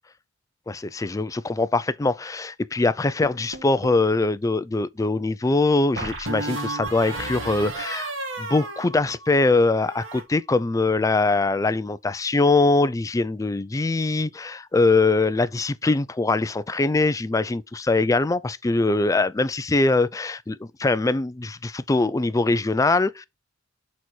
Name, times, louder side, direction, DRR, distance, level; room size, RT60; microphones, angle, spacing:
voice 1, 0.7-8.1 8.4-23.3, left 3 dB, 15° left, 0.3 m, -22 dB
sound 1, 3.2-4.1 6.0-9.5 9.7-10.2, right 2 dB, 85° right, 1.8 m, -33 dB
6.1 x 4.1 x 4.5 m
head